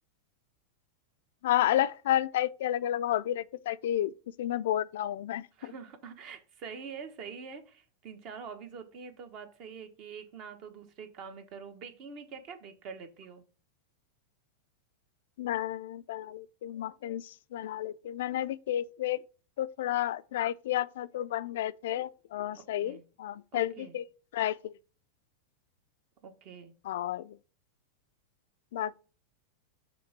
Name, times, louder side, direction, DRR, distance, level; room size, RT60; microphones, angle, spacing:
voice 1, 1.4-4.1 4.4-5.7 15.4-19.2 19.6-24.1 24.3-24.7 26.8-27.4 28.7-29.0, left 12 dB, 75° left, 0.3 m, -31 dB
voice 2, 5.6-13.4 22.8-23.0 23.5-23.9 26.2-26.7, right 6 dB, 45° right, 1.2 m, -45 dB
5.9 x 3.6 x 5.8 m
supercardioid pair, 135°, 0 cm